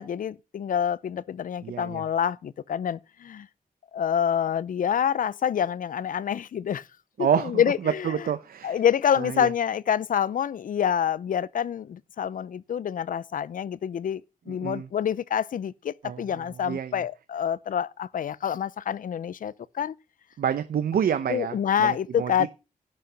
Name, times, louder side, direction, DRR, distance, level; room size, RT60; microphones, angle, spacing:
voice 1, 0.0-3.5 3.9-6.8 7.4-8.1 8.6-14.2 14.5-19.9 21.3-22.5, left 8 dB, 65° left, 0.5 m, -27 dB
voice 2, 1.6-2.0 7.2-8.8 9.2-9.5 14.5-14.9 16.0-17.0 20.4-22.5, right 8 dB, 80° right, 0.8 m, -28 dB
11.0 x 6.4 x 5.7 m
wide cardioid pair, 140°, 15 cm